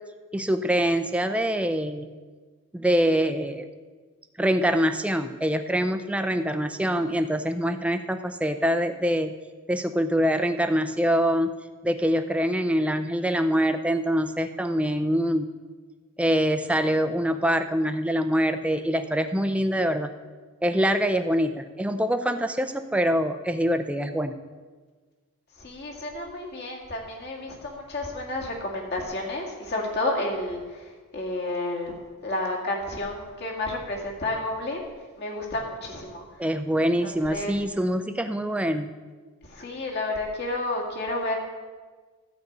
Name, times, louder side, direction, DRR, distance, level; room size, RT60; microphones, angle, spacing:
voice 1, 0.3-2.1 2.7-3.7 4.4-9.3 9.7-11.5 11.8-15.5 16.2-20.1 20.6-24.4 36.4-38.9, equal, 5° right, 8 dB, 0.5 m, -24 dB
voice 2, 25.5-34.9 35.2-36.5 37.0-37.6 39.4-41.4, left 2 dB, 50° left, -1 dB, 2.0 m, -31 dB
12.5 x 5.3 x 8.0 m, 1.4 s
head